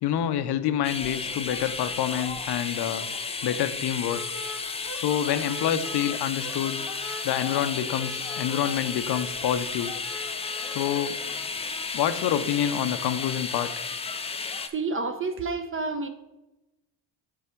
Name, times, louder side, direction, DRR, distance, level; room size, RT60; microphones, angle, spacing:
voice 1, 0.0-3.1 3.4-4.2 4.9-6.8 7.2-9.9 10.7-11.2 11.9-13.8, left 10 dB, 55° left, 11 dB, 0.6 m, -27 dB
sound 1, 0.8-14.7, left 4 dB, 15° left, 0.4 m, -33 dB
sound 2, 1.5-2.0 2.3-2.4 2.8-2.9 4.0-6.1 6.4-13.4, left 1 dB, 5° right, 1.1 m, -43 dB
voice 2, 14.7-16.1, right 3 dB, 25° right, 9 dB, 0.7 m, -29 dB
8.6 x 3.5 x 4.4 m, 0.99 s
supercardioid pair, 80°, 48 cm